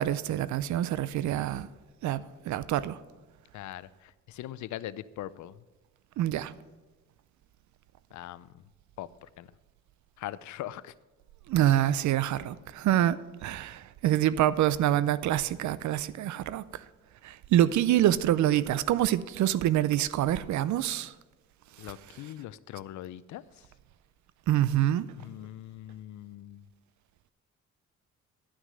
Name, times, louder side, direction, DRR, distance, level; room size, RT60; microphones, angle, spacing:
voice 1, 0.0-1.7 2.0-3.0 6.2-6.5 11.5-16.6 17.2-21.1 24.5-25.1, right 12 dB, 70° right, 0.6 m, -26 dB
voice 2, 3.5-5.6 8.1-8.5 9.0-9.1 9.4-9.5 10.2-10.9 21.8-23.4 25.2-26.6, left 13 dB, 70° left, 0.5 m, -41 dB
11.5 x 6.2 x 6.7 m
cardioid pair, 90°, 30 cm